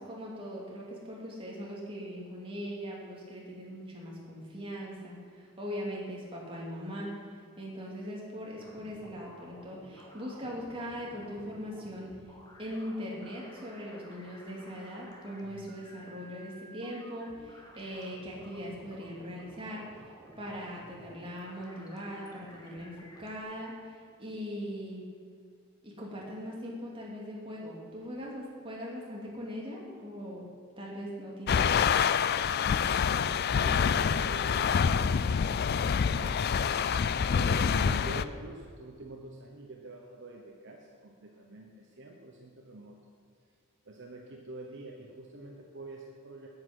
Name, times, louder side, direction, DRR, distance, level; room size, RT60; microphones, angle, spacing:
voice 1, 0.0-7.1 7.6-12.1 12.6-19.9 20.4-25.0 25.8-30.5 30.8-31.9, equal, 25° right, -4 dB, 2.6 m, -40 dB
sound 1, 8.6-23.4, equal, 15° left, 1.4 m, -53 dB
sound 2, 31.5-38.2, left 7 dB, 45° left, 0.3 m, -26 dB
voice 2, 33.4-36.4 37.3-43.0 43.9-46.5, right 2 dB, 55° right, 0 dB, 1.0 m, -46 dB
9.2 x 8.6 x 8.1 m, 2.2 s
head